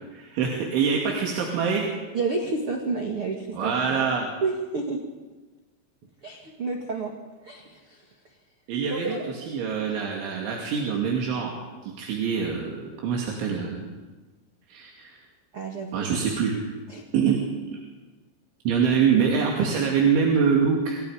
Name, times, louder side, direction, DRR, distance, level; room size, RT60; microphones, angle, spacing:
voice 1, 0.1-1.9 3.5-4.3 8.7-11.6 12.0-13.9 14.7-15.2 15.9-16.6 17.1-17.4 18.7-21.0, right 6 dB, 80° right, -1 dB, 4.8 m, -24 dB
voice 2, 2.1-4.0 4.4-5.1 6.2-7.1 7.4-8.0 8.9-9.3 15.5-16.3 16.9-17.0, right 3 dB, 45° right, 1 dB, 1.9 m, -30 dB
28.0 x 26.0 x 5.1 m, 1.2 s
omnidirectional pair, 5.4 m